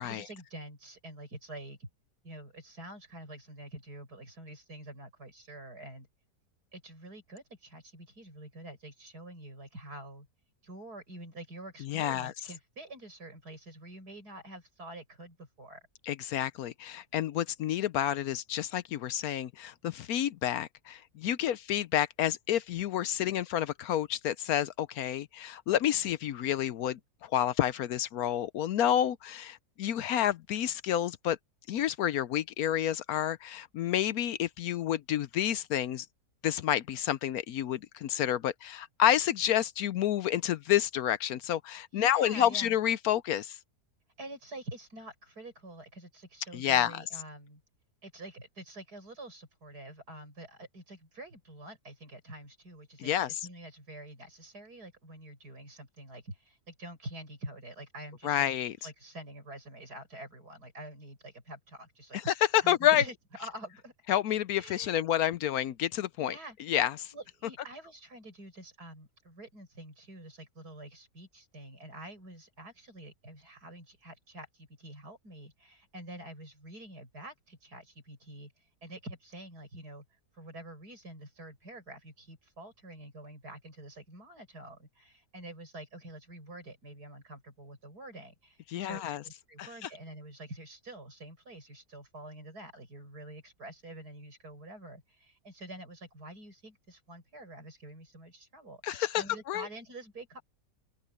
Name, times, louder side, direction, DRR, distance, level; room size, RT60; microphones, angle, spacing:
voice 1, 0.0-1.9 2.2-6.1 6.7-10.3 10.6-15.8 41.9-42.8 44.2-47.6 48.0-58.5 58.8-62.3 62.6-63.9 64.5-65.0 65.4-65.5 66.2-66.6 67.1-78.5 78.8-80.0 80.3-100.4, right 1 dB, 75° right, 8.2 m, -47 dB
voice 2, 11.8-12.3 16.1-31.4 31.7-36.1 36.4-43.6 46.5-47.0 53.0-53.4 58.2-58.8 62.1-63.0 64.1-66.4 66.7-67.1 88.7-89.2 89.6-89.9 98.8-99.7, left 11 dB, 70° left, 1.1 m, -29 dB
open air
omnidirectional pair, 1.7 m